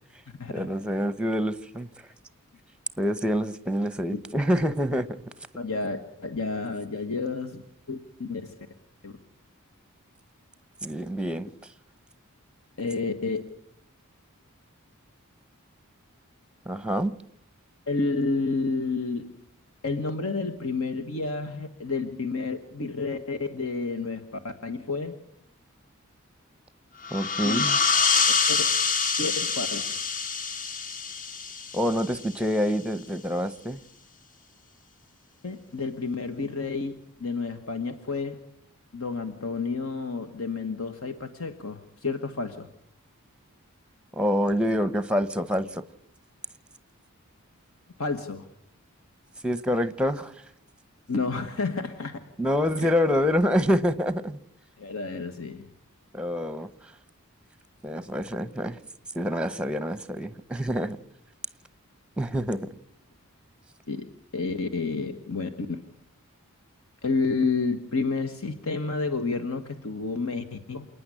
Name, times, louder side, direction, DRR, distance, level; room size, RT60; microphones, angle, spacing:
voice 1, 0.5-1.9 3.0-5.2 10.8-11.5 16.7-17.1 27.1-27.8 31.7-33.8 44.2-45.8 49.4-50.3 52.4-54.4 56.1-56.7 57.8-58.8 59.1-61.0 62.2-62.7, equal, 5° right, 0.8 m, -26 dB
voice 2, 5.5-7.6 7.9-8.5 9.0-9.1 12.8-13.5 17.9-19.4 19.8-25.2 27.4-27.6 28.5-28.7 29.2-29.8 35.4-38.4 38.9-42.7 48.0-48.5 51.1-52.2 52.8-52.9 54.8-55.6 63.9-64.1 64.3-65.8 67.0-70.9, left 3 dB, 75° left, 1.3 m, -30 dB
sound 1, 27.0-32.4, left 5 dB, 40° left, 1.1 m, -26 dB
28.0 x 9.6 x 9.9 m
head